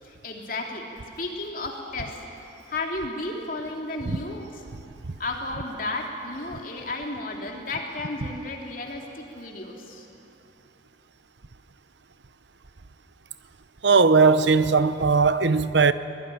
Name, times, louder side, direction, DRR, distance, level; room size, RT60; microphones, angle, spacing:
voice 1, 0.0-0.9 1.2-2.2 2.7-4.6 5.2-10.1, left 2 dB, 50° left, 3.0 m, -33 dB
voice 2, 13.8-15.9, right 4 dB, 75° right, 0.9 m, -18 dB
23.0 x 19.5 x 10.0 m
head